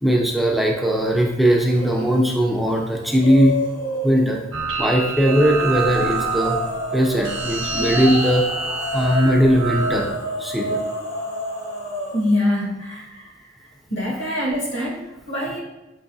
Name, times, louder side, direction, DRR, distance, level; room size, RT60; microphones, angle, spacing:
voice 1, 0.0-3.6 4.0-4.4 4.8-6.6 6.9-8.4 8.9-10.1 10.4-10.8, equal, ahead, -1 dB, 0.4 m, -19 dB
sound 1, 1.6-2.2 2.6-4.4 5.1-12.3, equal, 90° left, 1.5 m, -29 dB
sound 2, 4.5-10.1, right 4 dB, 75° right, 0.7 m, -27 dB
voice 2, 12.1-13.3 13.9-15.6, left 1 dB, 60° left, -2 dB, 0.9 m, -24 dB
5.7 x 2.9 x 2.6 m, 1.0 s
head